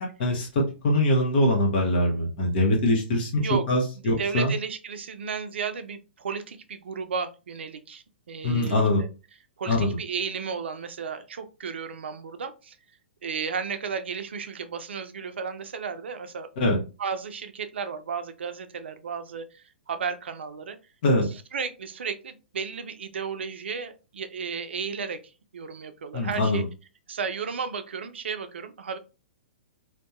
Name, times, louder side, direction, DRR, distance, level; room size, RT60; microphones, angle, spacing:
voice 1, 0.2-3.4 3.7-4.5 8.4-9.0 9.7-9.9 16.6-16.8 21.0-21.3 26.1-26.6, left 1 dB, 60° left, -1 dB, 1.0 m, -23 dB
voice 2, 4.0-9.1 9.6-12.8 13.2-16.5 17.0-20.8 21.5-25.2 25.5-26.6 27.1-29.0, right 6 dB, 75° right, 9 dB, 0.4 m, -33 dB
2.7 x 2.2 x 2.4 m, 0.32 s
hypercardioid pair, 120°, 6 cm